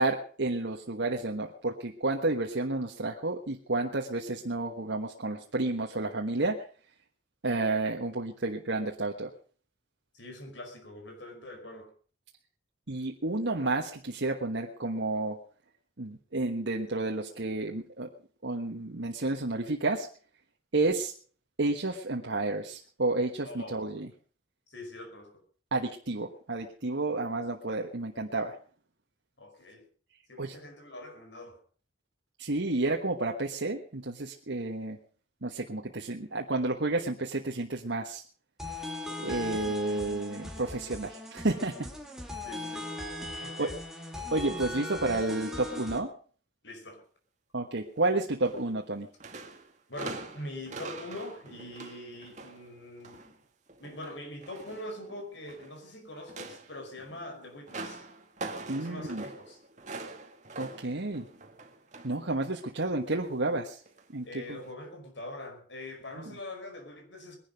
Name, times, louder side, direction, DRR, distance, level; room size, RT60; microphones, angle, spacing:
voice 1, 0.0-6.6 7.4-9.3 12.9-15.4 16.0-18.1 18.4-20.1 20.7-21.1 21.6-24.1 25.7-28.6 30.4-30.5 32.4-35.0 35.4-38.2 39.2-41.9 43.3-43.7 44.3-46.1 47.5-49.1 58.7-59.2 60.6-61.3 62.0-63.8 64.1-64.4 66.2-66.3, right 2 dB, 75° right, 1.4 m, -31 dB
voice 2, 10.1-11.9 23.4-23.9 24.7-25.4 29.4-29.9 30.3-31.6 42.4-42.9 43.4-43.8 46.6-47.0 49.9-53.4 53.8-58.1 58.8-59.6 64.2-67.4, left 1 dB, 75° left, 5.3 m, -43 dB
sound 1, 38.6-46.0, left 2 dB, ahead, 2.4 m, -39 dB
sound 2, 48.4-48.9 49.2-53.3 53.7-55.8 56.2-62.3 62.6-62.8 63.9-64.0 64.6-64.7, right 3 dB, 40° right, 2.0 m, -44 dB
20.5 x 11.5 x 5.2 m
head